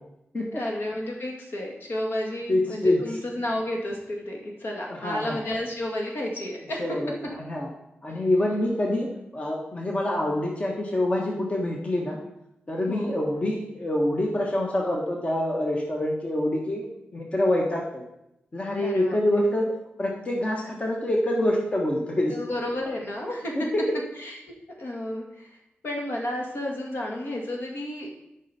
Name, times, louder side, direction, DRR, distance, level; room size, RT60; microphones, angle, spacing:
voice 1, 0.6-6.8 12.9-13.1 18.8-19.4 22.3-23.7 24.2-25.6 25.8-28.1, left 1 dB, 65° left, 0 dB, 2.0 m, -32 dB
voice 2, 2.5-3.0 4.9-5.4 6.8-7.7 8.0-9.1 9.3-12.2 12.7-18.0 18.5-19.6 20.0-22.3 23.5-23.8, left 1 dB, 35° left, -1 dB, 1.3 m, -26 dB
12.5 x 5.5 x 4.2 m, 0.86 s
wide cardioid pair, 105°, 4 cm